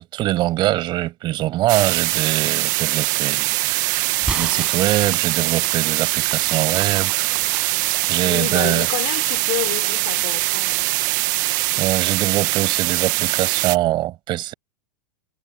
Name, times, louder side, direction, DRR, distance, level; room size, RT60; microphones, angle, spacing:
voice 1, 0.0-7.3 7.5-7.8 8.1-8.9 11.8-14.5, right 16 dB, 40° right, 7.9 m, -23 dB
sound 1, 1.7-13.8, right 22 dB, 60° right, 1.3 m, -22 dB
sound 2, 4.2-8.1 8.6-9.9, right 2 dB, 10° right, 5.9 m, -34 dB
voice 2, 4.4-4.8 7.9-10.9, left 24 dB, 60° left, 4.0 m, -30 dB
hypercardioid pair, 115°, 11 cm